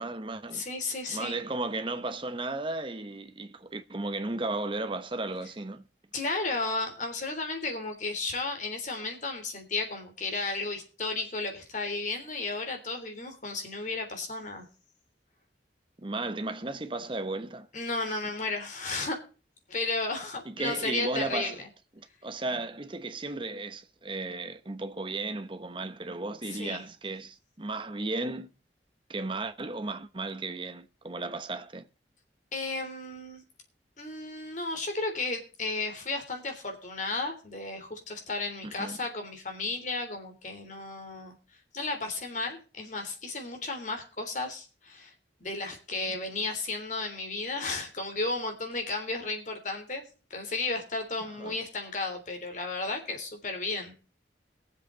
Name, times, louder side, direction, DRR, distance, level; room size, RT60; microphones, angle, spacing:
voice 1, 0.0-0.7 1.1-5.9 16.0-17.7 20.4-21.6 22.0-28.5 29.1-31.9 38.6-39.0 51.4-51.6, right 2 dB, 30° right, 1.0 m, -35 dB
voice 2, 0.5-1.4 6.1-14.7 17.7-19.2 19.7-21.5 26.5-26.8 32.5-33.4 34.0-41.3 41.7-45.1 45.4-50.0 50.3-53.9, left 3 dB, 45° left, 3.5 m, -33 dB
21.5 x 7.7 x 4.0 m
head